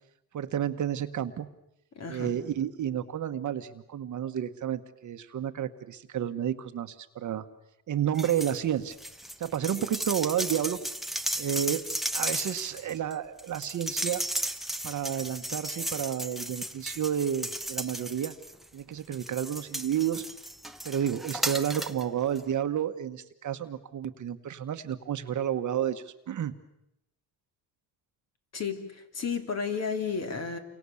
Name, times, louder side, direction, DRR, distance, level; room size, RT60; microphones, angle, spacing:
voice 1, 0.3-1.5 2.1-7.4 7.9-8.9 9.4-10.8 11.4-11.8 12.1-14.2 14.8-18.3 18.7-20.2 20.8-26.5, right 10 dB, 45° right, 9 dB, 1.4 m, -31 dB
voice 2, 1.9-2.3 28.5-30.6, left 5 dB, 40° left, 6 dB, 3.3 m, -32 dB
sound 1, 8.1-8.6 8.9-18.7 19.1-22.0 22.4-22.5, right 1 dB, ahead, 1.0 m, -35 dB
29.5 x 24.5 x 7.2 m, 0.83 s
cardioid pair, 140°, 41 cm